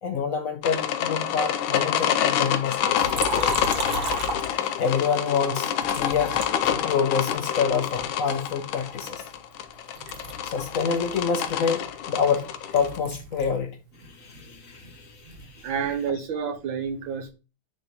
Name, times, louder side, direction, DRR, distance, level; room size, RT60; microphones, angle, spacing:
voice 1, 0.0-3.5 4.8-6.3 6.7-9.2 10.4-12.5 12.7-13.8 14.1-15.6, left 6 dB, 70° left, 0.8 m, -27 dB
sound 1, 0.6-13.0, left 10 dB, 90° left, 1.4 m, -27 dB
Liquid, 3.0-5.0 5.8-7.4 7.9-9.7 9.9-13.6 13.9-15.5, right 3 dB, 45° right, 0.8 m, -35 dB
voice 2, 15.6-17.3, right 6 dB, 75° right, 1.7 m, -29 dB
9.6 x 3.5 x 2.9 m
omnidirectional pair, 2.2 m